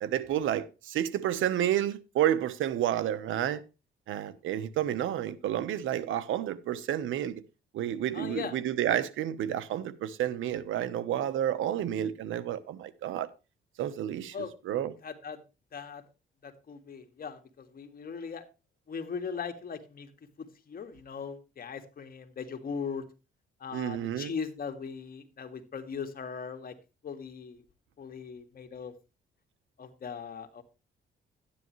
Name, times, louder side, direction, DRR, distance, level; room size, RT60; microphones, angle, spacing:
voice 1, 0.0-3.6 4.1-7.4 7.7-13.3 13.8-14.3 14.6-14.9 23.7-24.3, right 11 dB, 80° right, 1.1 m, -30 dB
voice 2, 8.1-8.5 14.3-14.5 15.0-15.4 15.7-16.0 16.4-18.4 18.9-20.1 20.4-23.1 23.6-26.7 27.0-27.6 28.0-28.9 29.8-30.6, left 6 dB, 50° left, 2.1 m, -39 dB
12.0 x 10.0 x 3.2 m
cardioid pair, 90°, 20 cm